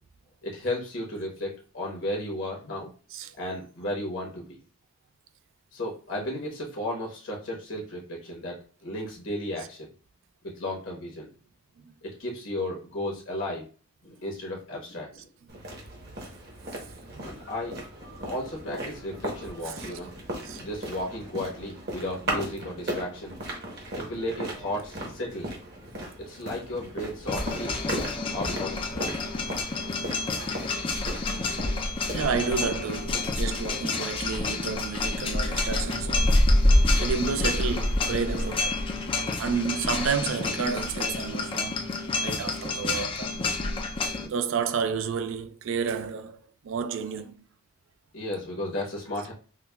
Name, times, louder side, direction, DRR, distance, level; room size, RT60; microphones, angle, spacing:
voice 1, 0.4-2.9 3.4-4.6 5.7-9.9 10.5-11.3 12.0-13.6 14.0-15.2 17.2-17.8 18.3-20.1 20.6-23.4 24.0-25.5 26.2-27.8 28.3-29.2 35.4-35.5 44.0-44.3 48.1-49.3, left 1 dB, 65° left, 1.0 m, -34 dB
sound 1, 15.5-34.0, right 1 dB, 50° right, 1.0 m, -37 dB
sound 2, 27.3-44.3, left 2 dB, 25° left, 0.3 m, -27 dB
voice 2, 32.1-36.3 37.0-38.8 39.4-41.8 42.2-43.4 44.3-46.4 46.6-47.3, right 6 dB, 65° right, 0.4 m, -30 dB
5.7 x 2.2 x 2.2 m
head